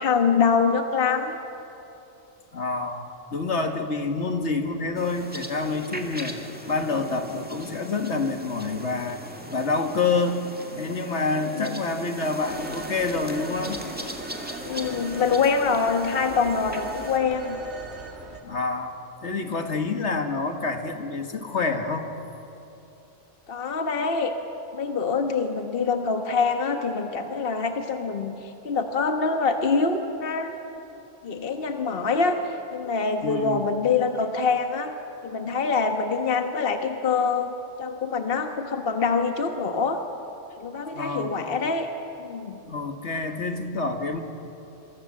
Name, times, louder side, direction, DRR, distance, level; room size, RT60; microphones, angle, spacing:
voice 1, 0.0-1.4 11.5-11.8 14.6-17.6 23.5-24.3 24.7-30.5 31.2-35.0 35.2-40.0 40.6-41.9 42.2-42.6, left 5 dB, 55° left, 5 dB, 1.5 m, -25 dB
voice 2, 2.5-3.1 3.3-6.4 6.7-9.2 9.5-10.4 10.8-13.8 18.4-18.9 19.2-22.1 33.2-33.6 40.9-41.3 42.7-44.2, left 3 dB, 75° left, 5 dB, 2.0 m, -27 dB
sound 1, 5.0-17.2, equal, 10° right, 2.0 m, -39 dB
Telephone, 12.4-18.4, right 4 dB, 65° right, 2.4 m, -41 dB
27.0 x 23.5 x 7.6 m, 2.9 s
omnidirectional pair, 1.2 m